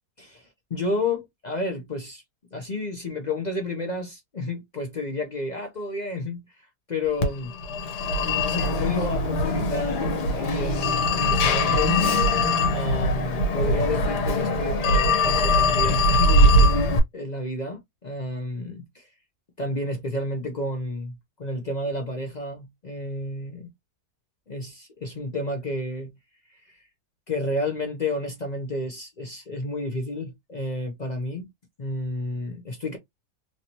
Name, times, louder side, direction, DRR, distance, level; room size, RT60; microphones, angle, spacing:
voice 1, 0.2-2.2 2.5-7.5 8.1-12.0 12.7-19.1 19.6-23.7 24.5-26.1 26.5-26.8 27.3-31.5 31.8-33.0, left 2 dB, 60° left, 0.4 m, -31 dB
Telephone, 7.2-17.0, left 1 dB, 85° left, 1.4 m, -21 dB
3.1 x 2.9 x 2.7 m
omnidirectional pair, 1.7 m